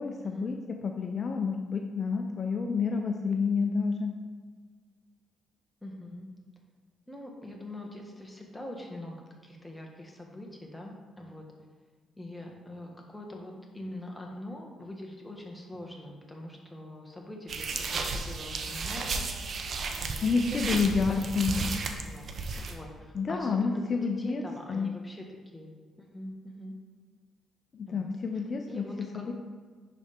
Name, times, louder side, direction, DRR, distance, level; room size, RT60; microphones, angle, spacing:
voice 1, 0.0-4.1 20.2-21.8 23.1-24.4 24.7-24.9 27.7-28.8 29.1-29.3, left 5 dB, 45° left, 3 dB, 0.6 m, -29 dB
voice 2, 5.8-6.3 7.1-9.2 9.4-11.4 12.2-19.3 20.0-21.7 22.0-22.3 22.6-25.3 25.5-25.7 26.0-26.7 27.9-28.1 28.6-29.3, left 1 dB, 5° left, 0 dB, 1.4 m, -43 dB
sound 1, 17.5-22.7, right 4 dB, 55° right, 0.8 m, -34 dB
10.5 x 4.2 x 3.5 m, 1.5 s
cardioid pair, 90°, 0 cm